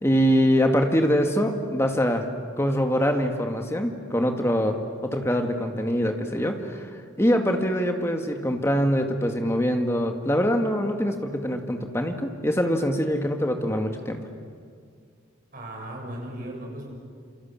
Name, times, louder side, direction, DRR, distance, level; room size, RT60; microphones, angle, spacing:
voice 1, 0.0-2.3 2.6-4.8 5.0-6.9 7.2-14.2, equal, 15° left, 4 dB, 2.1 m, -24 dB
voice 2, 15.5-16.9, right 1 dB, 45° right, 0 dB, 6.8 m, -36 dB
28.0 x 27.5 x 7.5 m, 2.1 s
head